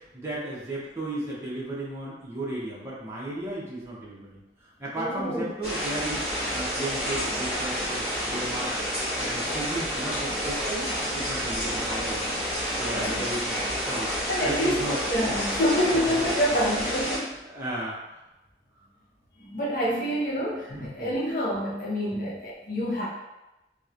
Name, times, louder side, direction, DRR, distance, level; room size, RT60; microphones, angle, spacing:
voice 1, 0.1-4.4 4.8-6.2 6.5-8.7 9.2-12.3 12.8-14.1 14.4-15.0 15.3-15.4 15.9-16.3 17.5-18.2 20.7-21.1 22.1-22.2, right 1 dB, 15° right, -7 dB, 0.6 m, -34 dB
voice 2, 5.0-5.5 12.9-13.2 14.3-17.3 19.4-23.1, equal, 50° left, -5 dB, 0.6 m, -27 dB
sound 1, 5.6-17.2, equal, 15° left, 1.0 m, -29 dB
2.9 x 2.0 x 2.4 m, 0.98 s
head